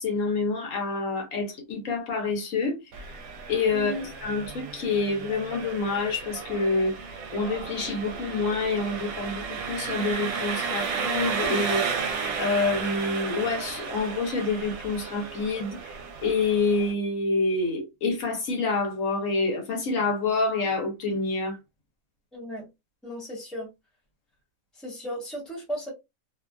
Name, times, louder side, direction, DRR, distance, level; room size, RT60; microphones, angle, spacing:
voice 1, 0.0-2.8 3.5-3.9 4.2-7.0 7.3-12.0 12.4-21.6, left 3 dB, 70° left, 1.1 m, -27 dB
Engine, 2.9-16.9, right 5 dB, 85° right, 1.1 m, -33 dB
voice 2, 3.7-4.1 22.3-22.7 23.0-23.7 24.8-25.9, equal, ahead, 1.0 m, -35 dB
2.7 x 2.4 x 2.2 m
omnidirectional pair, 1.5 m